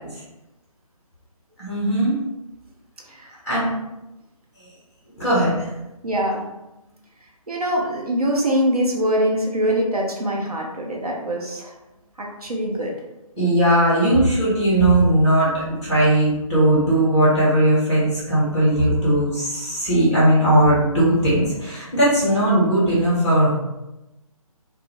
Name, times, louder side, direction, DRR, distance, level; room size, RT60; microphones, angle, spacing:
voice 1, 1.6-2.2 3.4-3.7 5.2-5.7 13.4-23.5, right 1 dB, 5° right, -9 dB, 0.5 m, -18 dB
voice 2, 6.0-6.4 7.5-11.7 12.2-12.9, equal, 80° right, -1 dB, 0.7 m, -23 dB
2.2 x 2.1 x 3.0 m, 0.98 s
figure-of-eight pair, 150°, 19 cm